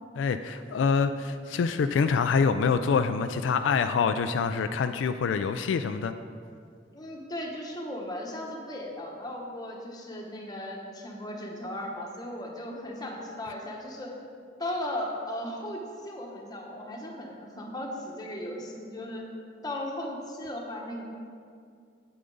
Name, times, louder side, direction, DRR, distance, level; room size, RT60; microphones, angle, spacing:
voice 1, 0.2-6.1, left 5 dB, 80° left, 9 dB, 0.3 m, -26 dB
voice 2, 6.9-14.1 14.6-19.2 19.6-21.0, left 1 dB, 20° left, -1 dB, 1.1 m, -36 dB
8.5 x 7.9 x 3.9 m, 2.2 s
head